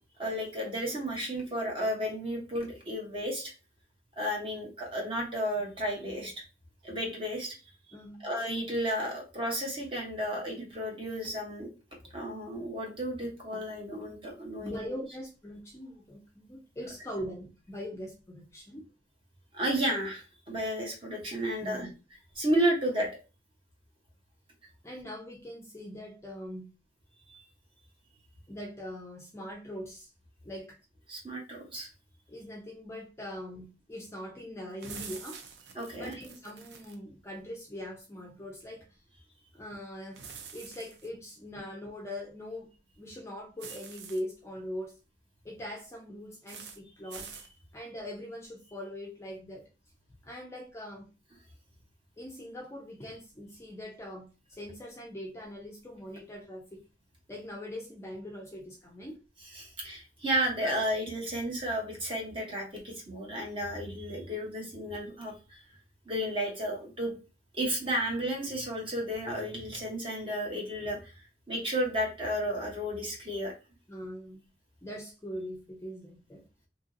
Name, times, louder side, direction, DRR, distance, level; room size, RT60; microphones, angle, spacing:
voice 1, 0.2-3.5 4.2-6.3 6.8-7.6 8.2-11.7 12.1-14.9 19.5-21.9 22.4-23.1 27.3-27.4 31.1-31.9 35.7-36.2 59.5-65.6 66.1-67.2 67.5-71.1 71.5-73.5, equal, 30° right, 0 dB, 0.9 m, -32 dB
voice 2, 7.9-8.2 14.6-18.9 21.6-21.9 24.8-26.7 28.5-30.1 30.4-30.8 32.3-35.4 36.0-38.9 39.5-40.2 40.5-42.7 43.0-45.0 45.4-47.3 47.7-49.7 50.2-51.1 52.2-56.8 57.3-59.2 60.6-60.7 73.9-74.4 74.8-76.4, left 1 dB, 15° left, 0 dB, 0.4 m, -42 dB
sound 1, 34.8-37.0 40.1-41.1 43.6-44.2 46.5-46.8 47.1-47.5, right 6 dB, 70° right, 0.5 m, -46 dB
2.8 x 2.6 x 2.5 m, 0.32 s
head